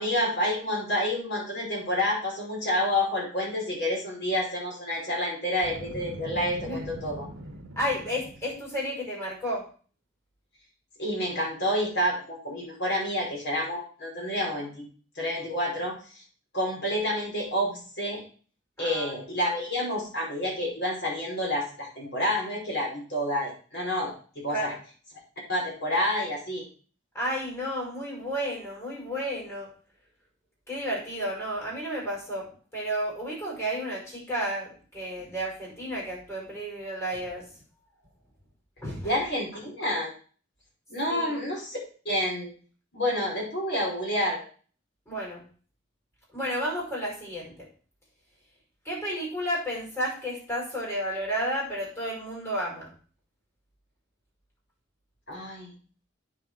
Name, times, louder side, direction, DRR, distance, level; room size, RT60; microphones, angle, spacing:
voice 1, 0.0-7.3 11.0-14.8 15.2-15.9 16.5-18.2 18.8-24.1 24.4-24.7 25.5-26.6 39.0-40.1 40.9-41.8 42.1-42.5 42.9-44.4 55.3-55.7, left 1 dB, 60° left, -3 dB, 5.2 m, -29 dB
Boom, 5.5-8.7, right 1 dB, 70° right, 1.3 m, -41 dB
voice 2, 7.8-9.7 18.8-19.1 24.5-24.7 27.1-29.7 30.7-37.4 38.8-39.1 41.1-41.3 45.1-45.4 46.3-47.5 48.8-52.9, equal, 15° left, -3 dB, 5.7 m, -32 dB
9.5 x 6.7 x 4.7 m, 0.41 s
head